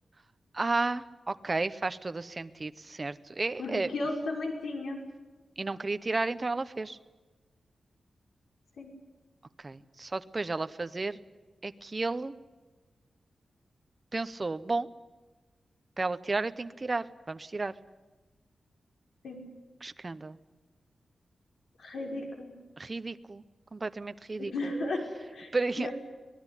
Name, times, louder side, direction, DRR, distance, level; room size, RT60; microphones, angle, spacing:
voice 1, 0.5-3.9 5.6-7.0 9.6-11.2 11.6-12.3 14.1-14.9 16.0-17.8 19.8-20.4 22.8-23.4 23.7-24.5 25.5-25.9, right 3 dB, 25° right, 12 dB, 0.8 m, -32 dB
voice 2, 3.6-5.0 8.8-8.9 19.2-19.4 21.8-22.5 24.4-25.0 25.3-25.5 25.8-25.9, left 2 dB, 85° left, 2 dB, 5.7 m, -34 dB
24.0 x 18.5 x 10.0 m, 1.2 s
wide cardioid pair, 170°, 0 cm